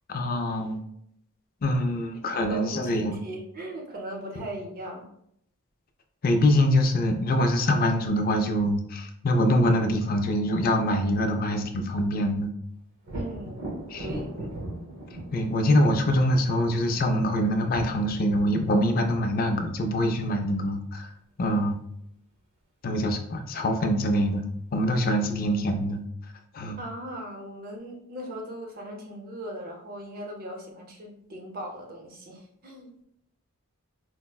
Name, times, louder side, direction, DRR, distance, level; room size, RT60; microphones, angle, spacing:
voice 1, 0.1-0.8 1.6-3.1 6.2-12.5 13.9-14.1 15.3-21.1 21.4-21.8 22.8-24.4 24.7-26.0 26.5-26.8, equal, 45° left, 4 dB, 0.4 m, -24 dB
voice 2, 2.4-5.1 13.1-14.3 26.8-32.9, equal, 45° right, 0 dB, 0.6 m, -39 dB
Thunder, 13.0-20.7 24.3-24.4 24.9-25.8, right 1 dB, 75° right, 0.8 m, -40 dB
4.3 x 2.0 x 2.2 m, 0.73 s
head